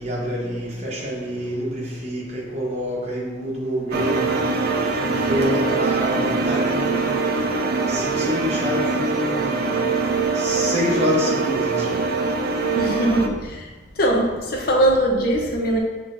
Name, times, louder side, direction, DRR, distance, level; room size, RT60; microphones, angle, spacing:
voice 1, 0.0-4.4 5.0-7.2 7.9-9.7 10.3-12.0, equal, 35° right, -4 dB, 1.0 m, -27 dB
sound 1, 3.9-13.3, right 3 dB, 50° right, 0.4 m, -23 dB
voice 2, 12.7-13.7 14.0-15.8, right 1 dB, 50° left, 1 dB, 0.7 m, -21 dB
5.9 x 3.4 x 2.5 m, 1.3 s
head